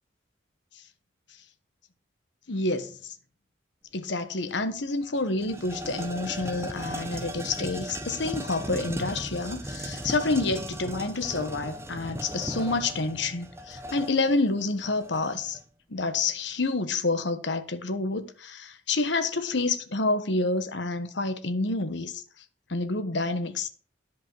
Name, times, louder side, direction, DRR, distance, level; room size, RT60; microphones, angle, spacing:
voice 1, 2.5-3.1 3.9-15.6 15.9-22.2 22.7-23.7, left 3 dB, 65° left, 1.1 m, -28 dB
sound 1, 4.5-4.6 4.9-15.6, equal, 15° right, 1.0 m, -37 dB
10.5 x 5.4 x 6.2 m
head